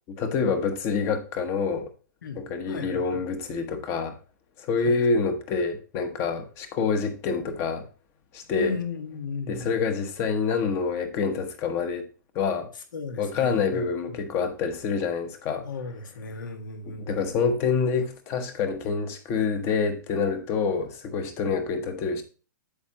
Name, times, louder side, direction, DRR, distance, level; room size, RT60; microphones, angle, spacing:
voice 1, 0.1-1.9 2.3-4.2 4.6-7.9 8.3-8.8 9.5-12.1 12.3-12.7 13.2-15.7 17.0-22.2, left 5 dB, 25° left, 1.0 m, -27 dB
voice 2, 2.2-3.2 4.8-5.1 8.6-9.9 12.9-14.2 15.6-17.3, left 4 dB, 75° left, 1.6 m, -36 dB
8.1 x 7.1 x 2.9 m
hypercardioid pair, 155°, 11 cm